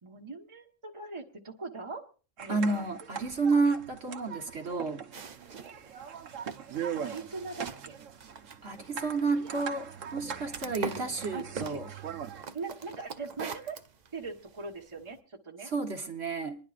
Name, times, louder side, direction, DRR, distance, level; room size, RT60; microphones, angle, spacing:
voice 1, 0.0-2.0 2.4-2.8 6.7-8.0 11.3-11.8 12.5-13.8 14.1-15.7, right 3 dB, 25° right, 1 dB, 1.3 m, -41 dB
sound 1, 2.4-12.4, right 8 dB, 80° right, 1.3 m, -41 dB
voice 2, 2.5-5.0 8.6-9.8 10.1-11.9 15.6-16.6, right 3 dB, 60° right, 2 dB, 1.6 m, -30 dB
sound 2, 5.1-15.2, right 5 dB, 45° right, 0.7 m, -44 dB
26.5 x 11.0 x 2.5 m, 0.37 s
omnidirectional pair, 1.3 m